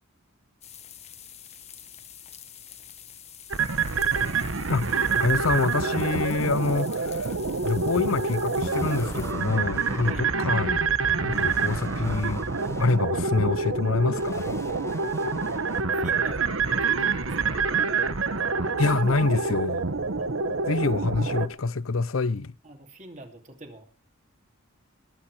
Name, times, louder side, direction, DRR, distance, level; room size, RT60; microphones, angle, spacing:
sound 1, 0.6-9.3, left 9 dB, 30° left, 1.5 m, -46 dB
sound 2, 3.5-21.5, right 4 dB, 80° right, 1.2 m, -27 dB
voice 1, 4.7-7.4 7.6-10.8 11.2-12.5 12.8-14.6 18.8-19.9 20.7-22.5, left 3 dB, 85° left, 0.7 m, -26 dB
sound 3, 8.6-10.1 11.3-13.0 14.1-15.8, left 1 dB, 15° left, 1.5 m, -44 dB
voice 2, 10.0-10.3 15.4-17.7 20.2-20.3 20.7-20.9 22.6-23.8, right 2 dB, 35° right, 2.7 m, -46 dB
21.5 x 8.9 x 4.9 m
head